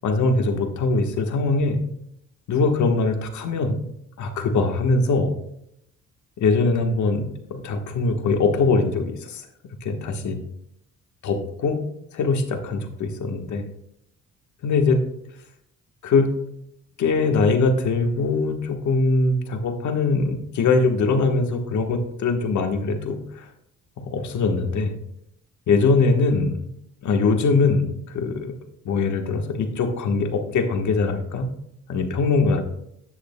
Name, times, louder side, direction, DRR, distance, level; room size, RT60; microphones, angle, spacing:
voice 1, 0.0-1.8 2.5-3.8 4.2-5.3 6.4-9.4 9.8-10.4 11.2-11.8 12.1-13.7 14.6-15.1 16.0-16.4 17.0-23.5 24.0-25.0 25.7-26.7 27.0-28.5 28.8-31.5 31.9-32.6, left 3 dB, 70° left, 4 dB, 1.4 m, -22 dB
10.0 x 7.8 x 2.2 m, 0.74 s
cardioid pair, 90°, 30 cm